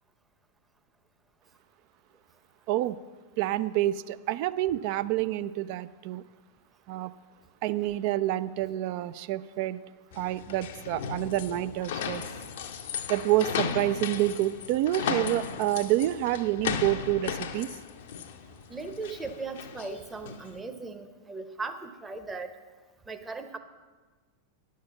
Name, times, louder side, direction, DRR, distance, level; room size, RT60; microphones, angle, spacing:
voice 1, 3.4-6.2 6.9-7.1 7.6-9.8 10.1-12.2 13.1-17.8, right 14 dB, 45° right, 14 dB, 0.3 m, -28 dB
sound 1, 10.1-20.5, left 7 dB, 55° left, 0.6 m, -36 dB
voice 2, 18.7-22.5 23.1-23.6, right 3 dB, 15° right, 8 dB, 0.8 m, -38 dB
10.0 x 6.5 x 6.9 m, 1.4 s
figure-of-eight pair, 90°, 0 cm